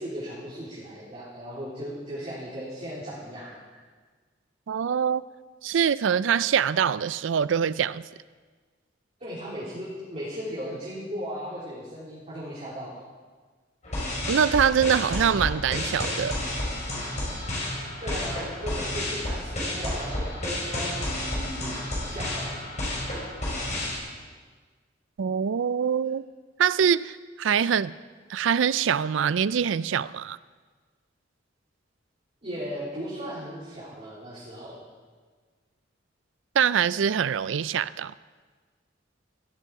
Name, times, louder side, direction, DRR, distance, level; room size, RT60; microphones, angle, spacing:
voice 1, 0.0-3.5 9.2-13.0 18.0-21.7 22.1-22.6 32.4-34.8, equal, 35° right, -9 dB, 3.7 m, -36 dB
voice 2, 4.7-5.2 5.6-8.0 14.3-16.4 25.2-26.2 26.6-27.9 28.3-30.4 36.6-38.1, right 7 dB, 85° right, 18 dB, 0.4 m, -24 dB
sound 1, 13.8-24.0, left 1 dB, 40° left, 4.9 m, -31 dB
15.5 x 13.0 x 4.8 m, 1.5 s
head